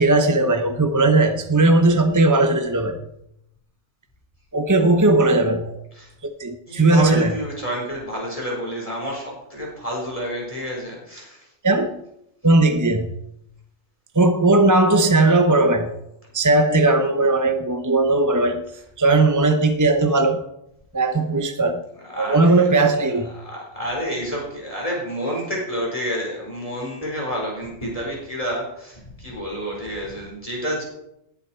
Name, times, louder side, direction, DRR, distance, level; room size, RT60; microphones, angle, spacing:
voice 1, 0.0-3.1 4.5-5.8 6.4-7.3 11.6-12.0 12.4-13.2 14.1-16.0 16.3-18.7 19.0-20.5 20.9-21.9 22.2-23.3, right 2 dB, 20° right, 7 dB, 0.6 m, -18 dB
voice 2, 6.7-11.5 22.0-22.7 23.1-30.8, equal, 30° left, -3 dB, 4.6 m, -29 dB
19.5 x 10.5 x 4.5 m, 0.81 s
omnidirectional pair, 1.3 m